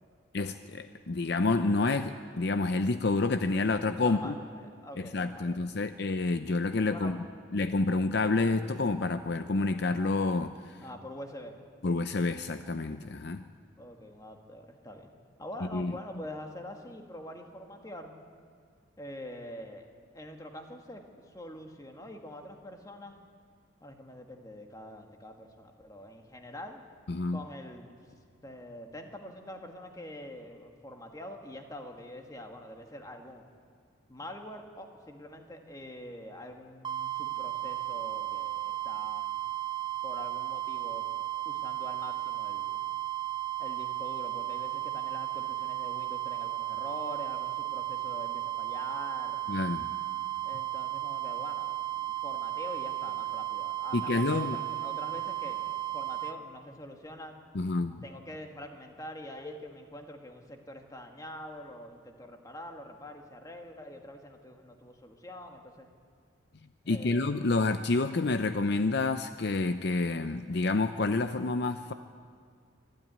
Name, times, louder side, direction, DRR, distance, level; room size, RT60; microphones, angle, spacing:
voice 1, 0.3-4.3 5.0-7.2 7.5-10.8 11.8-13.4 15.6-15.9 27.1-27.4 49.5-49.9 53.9-54.6 57.5-58.0 66.9-71.9, left 3 dB, 55° left, 10 dB, 0.6 m, -29 dB
voice 2, 4.0-5.6 6.9-7.2 10.8-11.6 13.8-15.1 15.4-18.1 19.0-19.9 20.1-23.2 23.8-26.8 27.3-27.9 28.4-33.5 34.1-39.3 40.0-42.9 43.6-49.4 50.4-57.4 58.0-65.9 66.9-67.4, left 1 dB, 20° left, 3 dB, 1.8 m, -45 dB
sound 1, 36.8-56.4, right 14 dB, 20° right, 0.5 m, -34 dB
24.5 x 13.0 x 9.4 m, 2.1 s
head